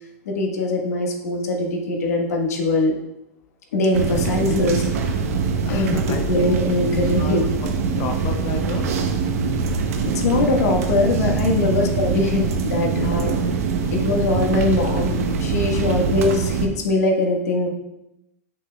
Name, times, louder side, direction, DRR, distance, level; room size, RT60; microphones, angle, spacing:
voice 1, 0.2-2.9 3.7-5.1 5.7-6.0 6.3-7.4 9.8-13.4 13.9-17.7, left 2 dB, 85° left, 1 dB, 1.3 m, -22 dB
sound 1, 3.9-16.7, right 5 dB, 70° right, 0.8 m, -23 dB
voice 2, 5.6-6.6 7.0-7.5 8.0-9.0 11.3-11.9 12.9-13.1 13.8-13.9 15.8-16.2, left 6 dB, 30° left, 3 dB, 0.5 m, -33 dB
7.6 x 6.0 x 2.3 m, 0.89 s
supercardioid pair, 155°, 8 cm